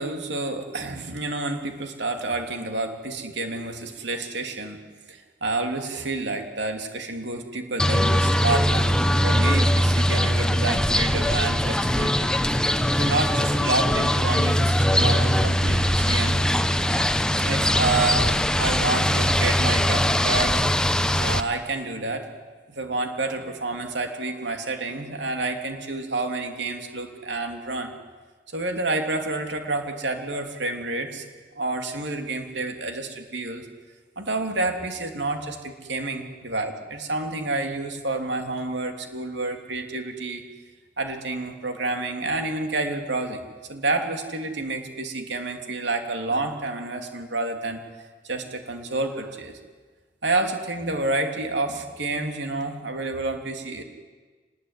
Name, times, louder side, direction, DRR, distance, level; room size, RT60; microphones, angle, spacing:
voice 1, 0.0-4.8 5.1-8.9 9.2-12.3 13.0-16.4 17.3-18.3 18.6-20.6 21.2-22.3 22.7-27.9 28.5-31.2 31.5-33.7 34.2-40.4 41.0-43.4 43.7-47.8 48.2-49.6 50.2-53.8, right 2 dB, 70° right, 5 dB, 3.3 m, -29 dB
sound 1, 7.8-21.4, equal, 5° left, 1.0 m, -21 dB
26.5 x 20.0 x 9.8 m, 1.4 s
head